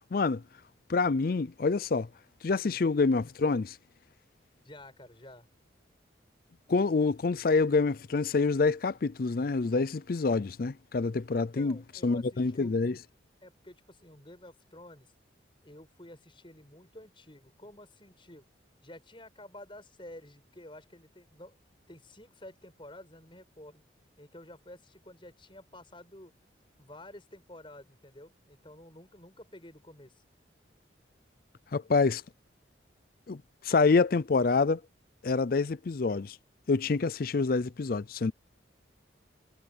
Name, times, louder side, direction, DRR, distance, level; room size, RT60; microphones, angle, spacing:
voice 1, 0.1-0.4 0.9-2.1 2.4-3.8 6.7-11.8 12.0-13.0 31.7-32.2 33.3-34.8 35.2-36.4 36.7-38.3, left 4 dB, 50° left, 0.4 m, -27 dB
voice 2, 4.6-5.5 11.4-12.8 13.4-15.1 15.6-18.4 18.8-21.6 21.9-23.8 24.2-26.3 26.8-30.2, left 1 dB, 25° left, 7.8 m, -51 dB
head